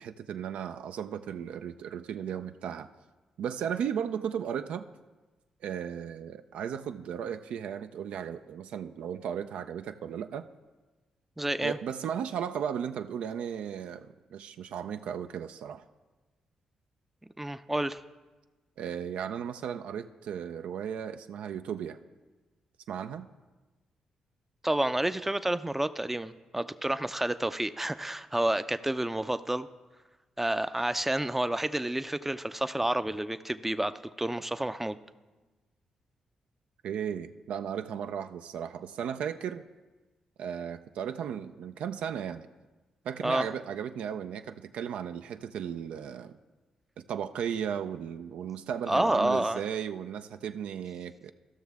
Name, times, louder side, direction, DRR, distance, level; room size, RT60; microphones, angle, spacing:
voice 1, 0.0-2.9 3.4-4.9 5.6-10.5 11.6-15.8 18.8-22.0 22.9-23.3 36.8-39.6 40.4-42.5 43.0-46.3 47.0-51.3, right 8 dB, 75° right, 9 dB, 0.3 m, -35 dB
voice 2, 11.4-11.8 17.4-18.0 24.6-29.7 30.4-35.0 43.2-43.5 48.9-49.6, right 1 dB, 10° right, 12 dB, 0.4 m, -29 dB
14.0 x 6.3 x 3.4 m, 1.2 s
supercardioid pair, 50°, 2 cm